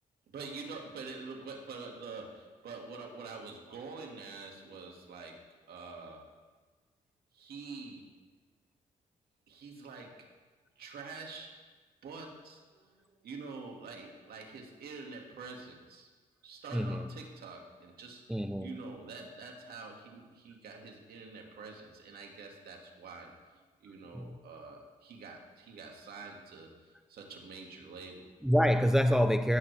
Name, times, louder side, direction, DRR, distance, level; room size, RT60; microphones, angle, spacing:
voice 1, 0.3-5.4 5.7-6.3 7.3-8.1 9.5-10.3 10.8-11.5 12.0-16.1 16.4-26.7 27.1-28.3, right 4 dB, 70° right, 1 dB, 2.2 m, -46 dB
voice 2, 16.7-17.1 18.3-18.8 24.1-24.4 28.4-29.6, equal, 5° right, 9 dB, 0.7 m, -27 dB
16.0 x 9.1 x 3.5 m, 1.3 s
supercardioid pair, 50°, 16 cm